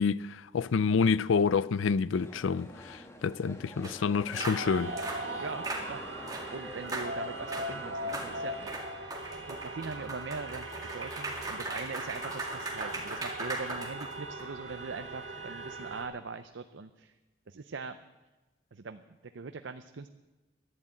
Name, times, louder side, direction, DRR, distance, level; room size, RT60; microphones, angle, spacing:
voice 1, 0.0-4.9, left 5 dB, 85° left, 0.4 m, -28 dB
sound 1, 2.1-8.8, left 1 dB, 15° left, 1.3 m, -48 dB
sound 2, 3.8-3.9 4.3-4.6 5.0-5.2 5.6-5.9 6.3-6.5 6.9-7.1 7.5-7.7 8.1-8.3 8.7-14.4, right 2 dB, 20° right, 2.1 m, -38 dB
sound 3, 4.3-16.0, right 1 dB, 60° right, 2.3 m, -40 dB
voice 2, 5.4-6.0 6.5-8.8 9.5-17.1 17.5-18.0 18.7-20.1, right 4 dB, 75° right, 0.6 m, -41 dB
12.0 x 11.0 x 8.9 m
head